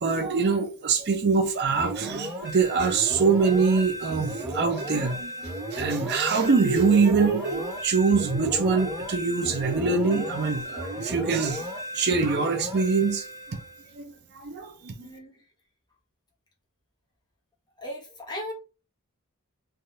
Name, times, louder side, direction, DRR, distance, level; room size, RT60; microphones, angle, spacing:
voice 1, 0.0-11.7 11.9-13.6 13.9-15.1, right 4 dB, 50° right, 0.5 m, -24 dB
sound 1, 1.8-13.9, equal, 15° right, 1.2 m, -34 dB
voice 2, 15.0-15.4 17.8-18.5, left 1 dB, 20° left, 0.8 m, -37 dB
3.3 x 2.3 x 2.6 m
head